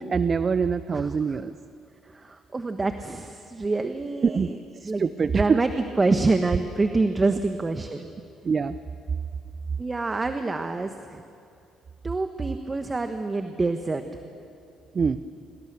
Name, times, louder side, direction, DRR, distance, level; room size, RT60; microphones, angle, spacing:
voice 1, 0.0-1.5 4.2-4.5 4.8-5.6 8.4-8.8 14.9-15.2, right 5 dB, 45° right, 14 dB, 0.6 m, -24 dB
voice 2, 0.9-1.4 2.0-4.6 4.8-5.7 6.0-8.1 9.8-11.2 12.0-14.0, right 3 dB, 30° right, 8 dB, 1.3 m, -26 dB
26.5 x 18.5 x 6.9 m, 2.5 s
hypercardioid pair, 55°, 0 cm